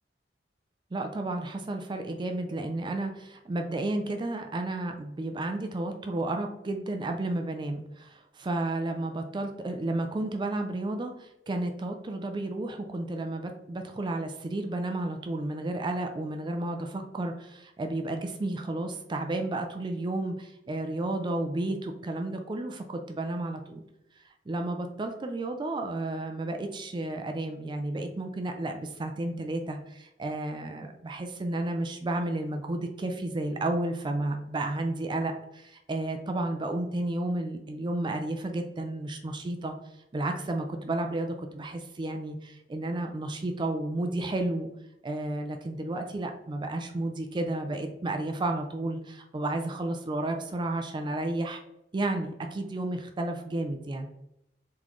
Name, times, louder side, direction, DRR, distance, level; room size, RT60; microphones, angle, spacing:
voice 1, 0.9-23.8 24.2-39.7 40.1-44.7 45.0-51.6 51.9-54.1, right 2 dB, 25° right, 5 dB, 0.4 m, -32 dB
3.8 x 3.7 x 3.0 m, 0.82 s
head